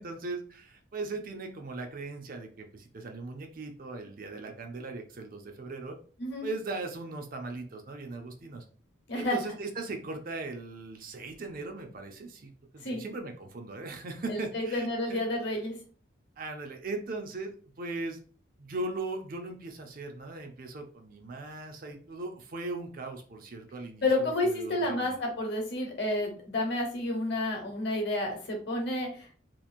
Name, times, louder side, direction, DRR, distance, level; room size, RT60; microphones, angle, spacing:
voice 1, 0.0-6.0 6.4-8.6 9.1-15.2 16.4-18.2 18.6-25.2, right 2 dB, 45° right, 4 dB, 0.4 m, -39 dB
voice 2, 14.3-15.7 24.0-29.4, left 2 dB, 55° left, 1 dB, 1.0 m, -30 dB
2.9 x 2.5 x 2.5 m, 0.42 s
head